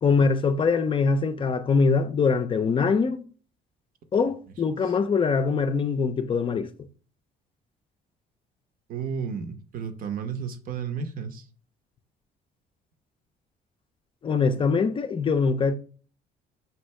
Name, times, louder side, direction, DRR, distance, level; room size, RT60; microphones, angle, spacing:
voice 1, 0.0-3.2 4.1-6.7 14.2-15.7, left 5 dB, 30° left, 0.4 m, -23 dB
voice 2, 8.9-11.4, right 6 dB, 55° right, 0.7 m, -32 dB
5.6 x 2.6 x 3.1 m
cardioid pair, 110°, 17 cm